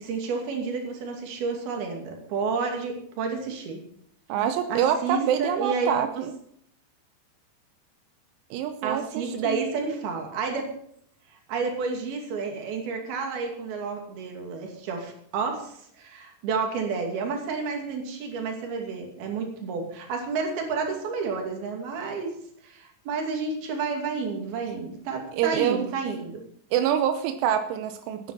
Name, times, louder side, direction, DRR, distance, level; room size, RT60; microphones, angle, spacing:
voice 1, 0.0-3.8 4.7-6.2 8.8-10.7 11.5-22.3 22.6-26.4, right 4 dB, 55° right, 2 dB, 4.3 m, -30 dB
voice 2, 4.3-6.3 8.5-9.6 25.3-25.9 26.7-28.3, right 9 dB, 90° right, 8 dB, 3.4 m, -26 dB
16.0 x 9.9 x 5.8 m, 0.67 s
omnidirectional pair, 5.4 m